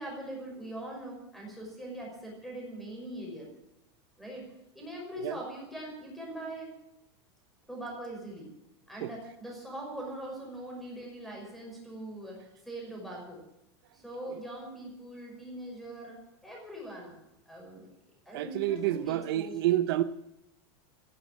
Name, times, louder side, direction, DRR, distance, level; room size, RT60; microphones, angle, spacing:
voice 1, 0.0-3.5 4.2-4.5 4.7-6.7 7.7-8.5 8.9-13.4 13.9-17.1 17.5-17.9 18.3-19.8, right 1 dB, ahead, 5.8 m, -42 dB
voice 2, 18.3-20.0, right 13 dB, 60° right, 0.8 m, -29 dB
16.0 x 11.5 x 7.5 m
supercardioid pair, 170°, 14 cm